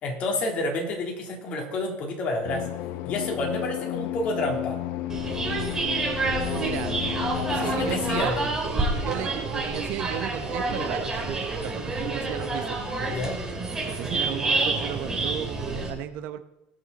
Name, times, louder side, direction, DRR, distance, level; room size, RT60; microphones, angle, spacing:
voice 1, 0.0-2.6 3.0-4.8 7.3-8.4 13.1-13.4, left 2 dB, 40° left, 0 dB, 3.4 m, -29 dB
sound 1, 2.4-8.2, left 14 dB, 65° left, 0.8 m, -32 dB
sound 2, 5.1-15.9, right 3 dB, 15° right, 3.2 m, -28 dB
voice 2, 6.5-7.0 7.6-12.8 13.8-16.4, right 12 dB, 60° right, 10 dB, 0.9 m, -35 dB
20.5 x 6.9 x 4.2 m, 0.90 s
supercardioid pair, 130°, 3 cm